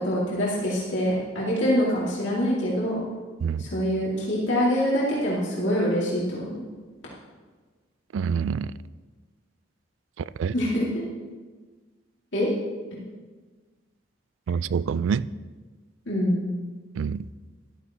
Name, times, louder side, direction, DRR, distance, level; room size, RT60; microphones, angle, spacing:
voice 1, 0.0-3.0 3.6-6.6 10.5-11.0 12.3-12.5 16.1-16.5, equal, 75° left, 2.3 m, -25 dB
voice 2, 8.1-8.7 10.4-10.5 14.5-15.3 17.0-17.3, right 6 dB, 85° right, 0.3 m, -26 dB
13.0 x 12.0 x 3.0 m
head